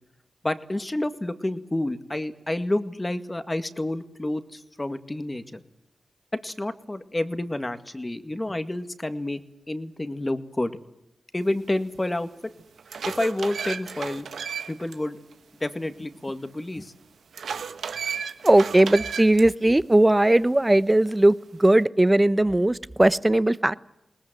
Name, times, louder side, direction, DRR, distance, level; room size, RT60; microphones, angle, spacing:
voice 1, 0.4-5.6 6.4-9.4 9.7-10.7 11.3-12.5 13.1-14.3 14.7-15.2 15.6-16.9, left 1 dB, 25° left, 10 dB, 2.0 m, -29 dB
sound 1, 11.9-12.0 12.6-14.9 15.3-15.4 17.3-19.4, right 6 dB, 90° right, 1.2 m, -33 dB
voice 2, 18.4-23.7, right 1 dB, 20° right, 16 dB, 0.9 m, -19 dB
21.5 x 19.5 x 9.2 m, 0.84 s
cardioid pair, 55°, 0 cm